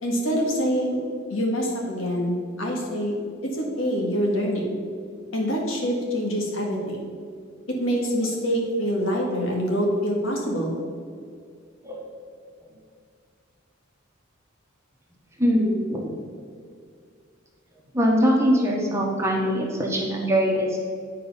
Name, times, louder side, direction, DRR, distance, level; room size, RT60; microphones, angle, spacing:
voice 1, 0.0-1.0 1.3-3.1 3.5-4.8 5.3-7.1 7.7-10.8, equal, 75° left, -1 dB, 1.9 m, -25 dB
voice 2, 15.4-16.1 17.9-20.8, equal, 15° right, -2 dB, 1.2 m, -22 dB
9.3 x 4.7 x 5.6 m, 2.2 s
head